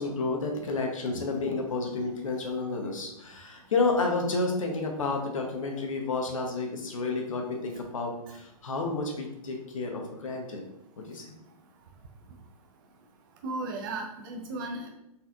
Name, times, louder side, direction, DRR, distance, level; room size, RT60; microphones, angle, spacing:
voice 1, 0.0-10.6 11.0-11.2, left 3 dB, 60° left, 2 dB, 0.8 m, -30 dB
voice 2, 13.4-14.9, right 2 dB, 35° right, 2 dB, 0.5 m, -35 dB
4.2 x 3.3 x 2.4 m, 0.88 s
figure-of-eight pair, 115°, 20 cm